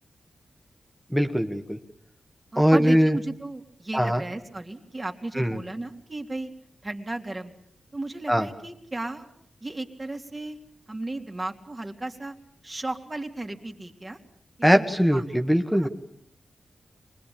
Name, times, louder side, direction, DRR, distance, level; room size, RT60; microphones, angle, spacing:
voice 1, 1.1-1.8 2.6-3.2 3.9-4.2 5.4-5.6 8.3-8.5 14.6-15.9, equal, ahead, 5 dB, 1.7 m, -21 dB
voice 2, 2.5-6.5 6.8-7.5 7.9-9.3 9.6-10.6 10.9-12.4 12.6-14.2 14.6-15.2 15.7-15.9, right 2 dB, 30° right, 5 dB, 3.1 m, -34 dB
24.5 x 20.5 x 8.7 m, 0.68 s
cardioid pair, 65°, 0 cm